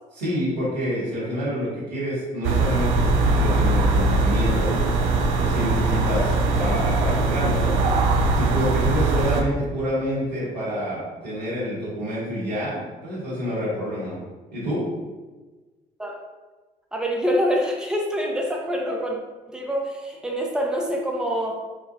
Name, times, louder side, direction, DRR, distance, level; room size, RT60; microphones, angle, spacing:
voice 1, 0.1-4.7 5.4-7.8 8.3-14.2 14.5-14.8, equal, 90° right, -7 dB, 1.2 m, -27 dB
sound 1, 2.4-9.4, right 3 dB, 70° right, 0.4 m, -21 dB
voice 2, 6.3-6.7 16.0-16.2 16.9-19.2 19.5-21.6, equal, 5° right, 0 dB, 0.8 m, -26 dB
4.8 x 2.3 x 2.6 m, 1.2 s
hypercardioid pair, 50°, 21 cm